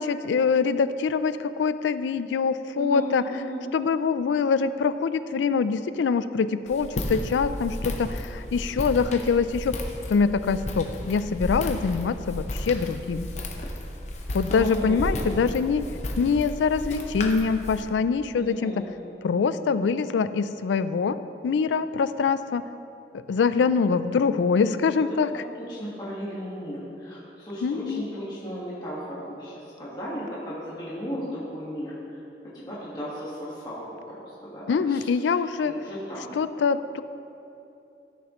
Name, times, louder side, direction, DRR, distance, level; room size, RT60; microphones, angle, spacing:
voice 1, 0.0-3.2 3.7-9.8 10.1-13.3 14.3-15.8 16.2-18.8 19.2-21.2 21.4-22.7 23.1-25.4 27.6-28.1 34.7-35.7 36.3-37.0, left 5 dB, 90° left, 13 dB, 0.3 m, -24 dB
voice 2, 2.7-3.6 14.5-15.5 18.4-18.9 25.6-29.5 29.8-31.9 32.5-35.1 35.6-36.3, equal, 25° left, -9 dB, 1.5 m, -35 dB
Walk footsteps, 6.7-17.8, left 1 dB, 40° left, 0.7 m, -33 dB
13.5 x 6.4 x 3.0 m, 2.8 s
head